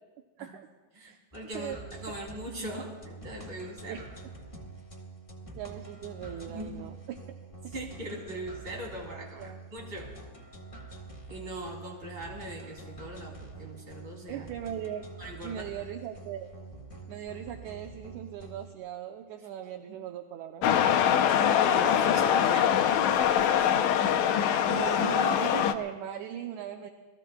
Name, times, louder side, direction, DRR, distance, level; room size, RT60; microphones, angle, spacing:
voice 1, 0.9-4.0 6.5-6.8 7.7-10.1 11.3-14.5 15.2-15.6 21.5-22.9 24.7-25.0, right 1 dB, 35° right, -1 dB, 3.6 m, -40 dB
sound 1, 1.3-18.7, right 3 dB, 45° left, 0.4 m, -46 dB
voice 2, 5.5-7.2 9.4-9.6 14.3-15.1 15.4-16.5 17.1-21.0 24.8-26.9, right 10 dB, 75° right, 4 dB, 2.0 m, -39 dB
sound 2, 20.6-25.7, left 9 dB, 75° left, 1.8 m, -23 dB
28.0 x 20.5 x 2.3 m, 1.3 s
omnidirectional pair, 3.9 m